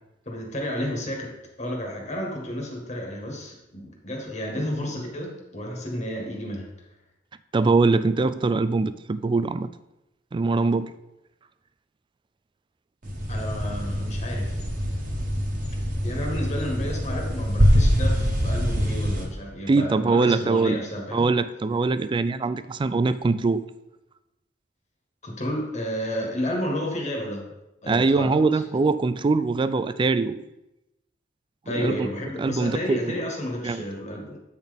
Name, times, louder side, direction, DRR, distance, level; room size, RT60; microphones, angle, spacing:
voice 1, 0.3-1.3 1.6-6.7 13.3-14.7 16.0-21.3 25.2-27.5 27.8-28.6 31.7-34.4, equal, 40° left, 0 dB, 1.8 m, -31 dB
voice 2, 7.5-9.7 10.3-10.9 19.7-20.8 21.1-23.6 27.9-30.4 31.7-32.1 32.4-33.2 33.6-33.8, right 3 dB, 25° right, 13 dB, 0.3 m, -22 dB
sound 1, 13.0-19.3, equal, 45° right, 1.4 m, -24 dB
8.5 x 4.1 x 5.2 m, 0.93 s
head